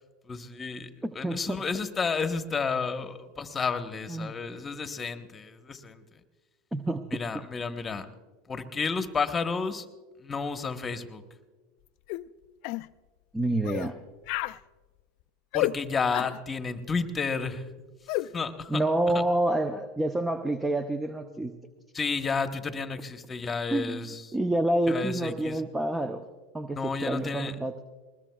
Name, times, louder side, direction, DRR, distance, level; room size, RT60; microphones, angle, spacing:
voice 1, 0.3-0.9 1.1-6.0 7.1-8.0 8.5-9.9 10.2-11.2 15.5-17.6 18.3-18.8 21.9-24.2 24.9-25.6 26.8-27.5, left 5 dB, 25° left, 8 dB, 1.1 m, -31 dB
voice 2, 1.0-1.6 4.1-4.3 6.7-7.2 13.3-14.0 18.7-21.5 23.7-26.2 26.5-27.8, right 1 dB, 10° right, 9 dB, 0.7 m, -28 dB
sound 1, 12.1-12.3 12.6-12.9 13.6-13.9 14.3-14.6 15.5-15.8 16.1-16.4 18.1-18.3, left 19 dB, 60° left, 0.3 m, -30 dB
20.5 x 20.5 x 2.3 m, 1.3 s
hypercardioid pair, 95°, 0 cm